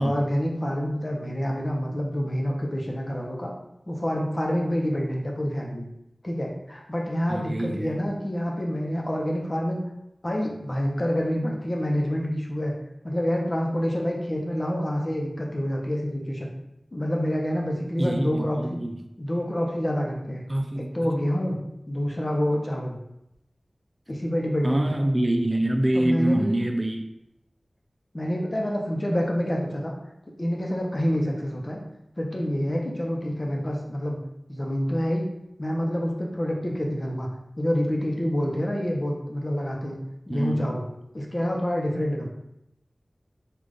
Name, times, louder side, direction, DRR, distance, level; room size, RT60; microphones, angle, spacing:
voice 1, 0.0-3.5 3.9-5.9 6.2-9.8 10.2-12.7 13.0-16.5 16.9-18.8 19.2-20.4 20.8-21.6 21.9-23.0 24.1-25.0 25.9-26.5 28.1-29.9 30.4-31.8 32.2-34.2 34.5-35.3 35.6-37.3 37.6-40.0 40.3-40.8 41.1-42.3, equal, 40° left, 0 dB, 0.8 m, -27 dB
voice 2, 7.3-8.0 18.0-19.0 20.5-20.9 24.6-27.1 40.3-40.6, right 1 dB, 35° right, 4 dB, 0.4 m, -25 dB
3.8 x 2.4 x 3.3 m, 0.82 s
wide cardioid pair, 50°, 0 cm